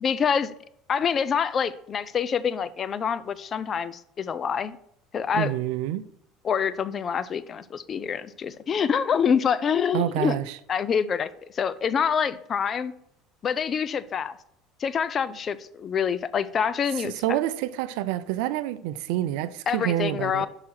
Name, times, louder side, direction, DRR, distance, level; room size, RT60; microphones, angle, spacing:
voice 1, 0.0-0.5 0.9-4.8 5.1-5.5 6.4-10.4 10.7-12.9 13.4-14.4 14.8-17.1 19.7-20.5, left 7 dB, 40° left, 0.5 m, -26 dB
voice 2, 5.3-6.0 9.9-10.6 17.0-20.5, right 13 dB, 75° right, 0.4 m, -27 dB
5.7 x 4.9 x 4.3 m
hypercardioid pair, 80°, 0 cm